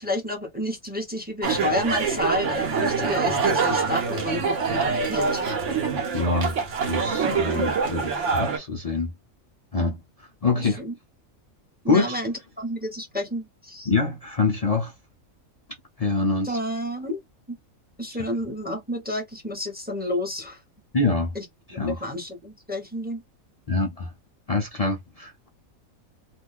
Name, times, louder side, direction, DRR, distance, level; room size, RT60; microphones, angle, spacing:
voice 1, 0.0-5.4 10.6-10.9 11.8-13.9 16.4-17.2 17.5-17.6 18.0-20.6 21.3-21.4 21.7-23.2, left 1 dB, 10° right, 0.8 m, -30 dB
sound 1, 1.4-8.6, right 5 dB, 60° right, 1.1 m, -25 dB
voice 2, 6.1-9.1 9.7-10.8 11.9-12.2 13.9-14.9 16.0-16.6 20.9-21.3 21.7-22.1 23.7-24.1 24.5-25.5, left 3 dB, 70° left, 0.3 m, -25 dB
2.5 x 2.4 x 3.5 m
omnidirectional pair, 1.5 m